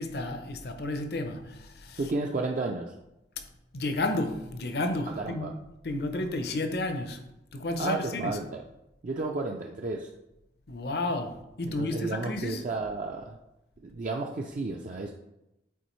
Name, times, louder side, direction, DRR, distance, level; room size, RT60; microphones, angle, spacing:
voice 1, 0.0-2.0 3.7-5.5 5.8-7.2 7.5-8.4 10.7-12.6, left 2 dB, 60° left, 0.6 m, -32 dB
voice 2, 2.0-2.9 5.1-5.5 7.8-8.6 9.0-10.1 11.7-13.4 13.8-15.1, right 3 dB, 45° right, 0.4 m, -32 dB
6.9 x 4.4 x 3.1 m
head